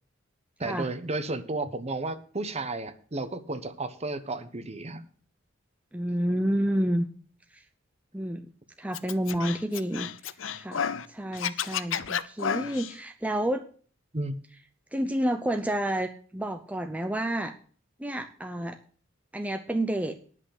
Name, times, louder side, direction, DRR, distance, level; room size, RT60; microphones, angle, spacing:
voice 1, 0.6-5.0 14.1-14.3, right 2 dB, 35° right, 11 dB, 1.0 m, -33 dB
voice 2, 5.9-7.1 7.5-7.6 8.1-8.5 8.8-10.1 10.6-10.8 11.1-13.6 14.9-17.5 18.0-18.8 19.3-20.1, right 1 dB, 5° right, 6 dB, 0.7 m, -29 dB
Scratching (performance technique), 8.9-11.1 11.3-12.9, left 8 dB, 85° left, 0.7 m, -31 dB
10.5 x 6.2 x 7.8 m, 0.43 s
head